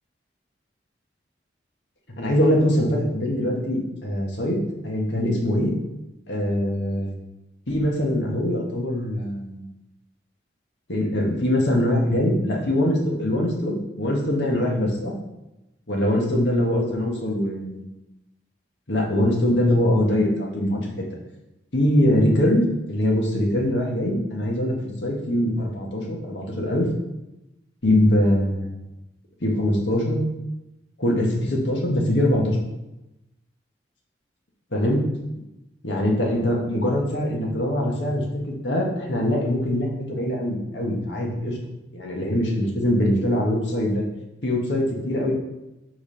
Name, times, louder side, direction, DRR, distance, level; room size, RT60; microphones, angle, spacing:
voice 1, 2.1-5.7 6.3-7.1 7.7-9.6 10.9-15.1 15.9-17.8 18.9-20.9 21.7-26.9 27.8-28.9 29.4-30.2 31.0-32.6 34.7-35.0 35.8-41.6 41.9-44.0 44.4-45.3, left 1 dB, 75° left, -1 dB, 1.6 m, -23 dB
5.2 x 4.7 x 5.7 m, 0.95 s
head